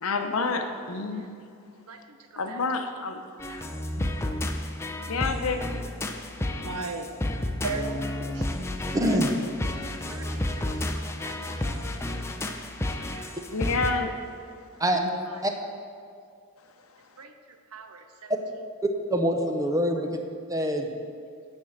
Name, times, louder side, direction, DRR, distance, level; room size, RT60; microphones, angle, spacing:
voice 1, 0.0-1.2 2.4-3.2 4.0-4.1 5.1-5.6 6.4-6.8 13.5-14.1 14.9-15.1, left 4 dB, 65° left, 5 dB, 0.8 m, -29 dB
voice 2, 1.9-2.6 3.5-3.7 6.4-7.1 7.6-8.5 10.1-13.4 15.3-15.4 17.2-18.3, right 3 dB, 85° right, 7 dB, 0.8 m, -40 dB
sound 1, 3.4-13.9, left 1 dB, 10° left, 0.5 m, -31 dB
voice 3, 8.9-9.3 14.8-15.0 15.4-15.5 19.1-20.1 20.5-20.9, equal, 15° right, 4 dB, 0.7 m, -24 dB
11.5 x 4.4 x 7.2 m, 2.3 s
head